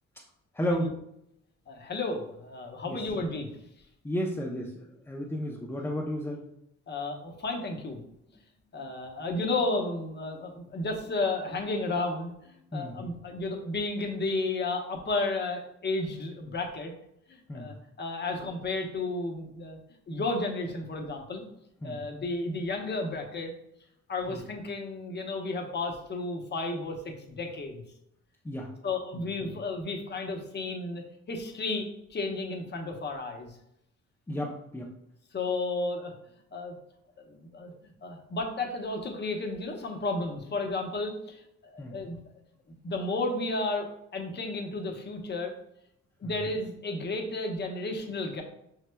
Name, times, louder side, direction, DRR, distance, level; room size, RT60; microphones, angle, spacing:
voice 1, 0.5-0.9 2.8-3.0 4.0-6.4 12.7-13.1 17.5-17.7 21.8-22.0 24.3-24.4 28.4-28.7 29.1-29.5 34.3-34.9 41.8-42.0 46.2-46.4, equal, 10° left, -2 dB, 0.6 m, -33 dB
voice 2, 1.7-3.5 6.9-8.0 8.7-16.9 17.3-19.8 20.1-21.4 21.8-23.5 24.1-27.8 28.8-33.6 35.3-36.1 36.5-36.7 37.2-37.7 38.0-41.4 41.7-42.2 42.8-45.5 46.2-48.4, left 2 dB, 35° left, 2 dB, 0.9 m, -33 dB
5.6 x 3.2 x 2.2 m, 0.77 s
cardioid pair, 90°, 30 cm